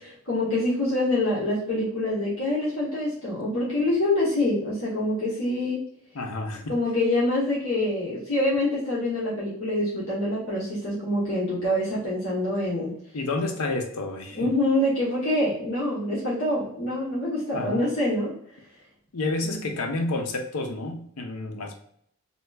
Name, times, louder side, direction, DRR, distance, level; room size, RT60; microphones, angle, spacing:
voice 1, 0.3-5.8 6.7-12.9 14.3-18.4 19.5-19.6, left 1 dB, 60° left, -7 dB, 0.9 m, -25 dB
voice 2, 6.1-6.8 13.1-14.5 17.5-17.8 19.1-21.7, left 2 dB, 80° left, 4 dB, 0.6 m, -30 dB
2.8 x 2.3 x 3.3 m, 0.67 s
head